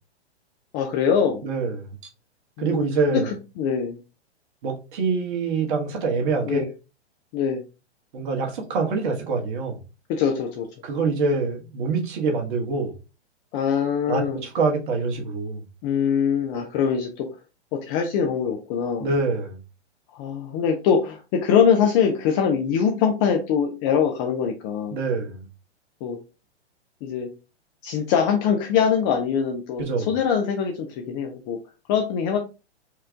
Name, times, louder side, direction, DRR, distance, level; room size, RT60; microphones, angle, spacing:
voice 1, 0.7-1.4 2.6-2.8 3.1-4.0 6.5-6.7 7.3-7.6 10.1-10.7 13.5-14.4 15.8-17.3 17.7-19.1 20.1-25.0 26.0-26.2 27.0-27.3 27.8-31.6 31.9-32.4, left 7 dB, 20° left, 0.3 m, -23 dB
voice 2, 1.4-1.9 2.6-3.3 4.6-6.6 8.1-9.8 10.8-12.9 14.1-15.6 19.0-19.6 24.9-25.4 29.8-30.1, right 4 dB, 45° right, 1.4 m, -25 dB
4.5 x 2.4 x 3.4 m
figure-of-eight pair, 115°, 34 cm